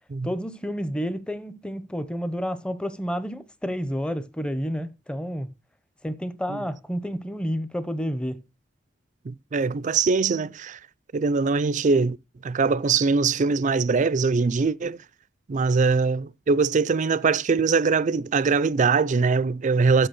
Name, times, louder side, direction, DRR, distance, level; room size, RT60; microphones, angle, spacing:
voice 1, 0.2-5.5 6.0-8.4, equal, 5° left, 0.6 m, -30 dB
voice 2, 9.3-10.8 11.1-12.2 12.4-15.0 15.5-20.1, right 4 dB, 40° right, 0.4 m, -22 dB
7.8 x 6.2 x 6.4 m
head